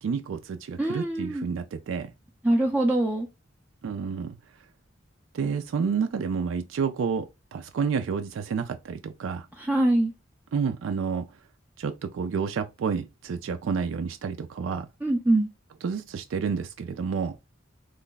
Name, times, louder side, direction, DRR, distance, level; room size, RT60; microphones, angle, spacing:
voice 1, 0.0-2.1 3.8-4.4 5.3-7.3 7.5-9.5 10.5-11.3 11.8-14.9 15.8-17.4, right 6 dB, 75° right, 0.4 m, -29 dB
voice 2, 0.8-1.4 2.4-3.3 9.6-10.1 15.0-15.5, right 1 dB, 10° right, 0.4 m, -23 dB
3.2 x 2.3 x 3.8 m
head